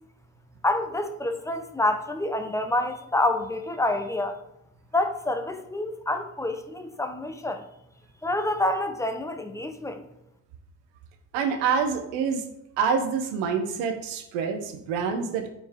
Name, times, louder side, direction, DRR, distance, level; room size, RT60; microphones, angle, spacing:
voice 1, 0.6-4.4 4.9-7.7 8.2-10.0, left 2 dB, 5° left, 6 dB, 1.1 m, -27 dB
voice 2, 11.3-12.4 12.8-15.5, right 6 dB, 75° right, 6 dB, 1.1 m, -26 dB
10.0 x 4.4 x 3.6 m, 0.83 s
hypercardioid pair, 50°, 44 cm